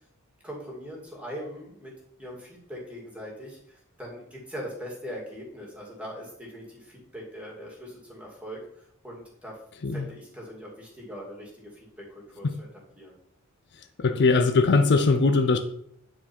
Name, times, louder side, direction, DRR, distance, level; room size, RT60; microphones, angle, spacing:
voice 1, 0.4-9.6 9.9-11.7 12.1-12.7 13.0-13.1, equal, 5° right, -3 dB, 2.5 m, -41 dB
voice 2, 13.7-15.6, left 3 dB, 50° left, 8 dB, 0.5 m, -21 dB
9.6 x 4.7 x 4.4 m, 0.71 s
head